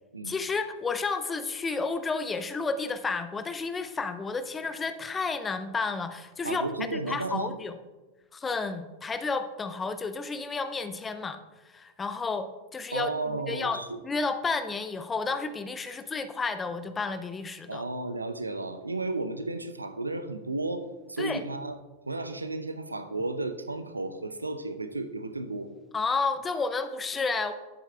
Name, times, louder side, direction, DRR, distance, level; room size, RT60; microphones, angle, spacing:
voice 1, 0.2-6.6 6.9-7.8 8.3-11.4 11.7-17.8 21.2-21.4 25.9-27.5, left 4 dB, 15° left, 11 dB, 0.5 m, -31 dB
voice 2, 6.4-7.5 12.9-14.0 17.7-21.8 22.1-25.7, right 2 dB, 80° right, 9 dB, 0.6 m, -33 dB
11.5 x 8.0 x 2.3 m, 1.2 s
figure-of-eight pair, 90°, 0 cm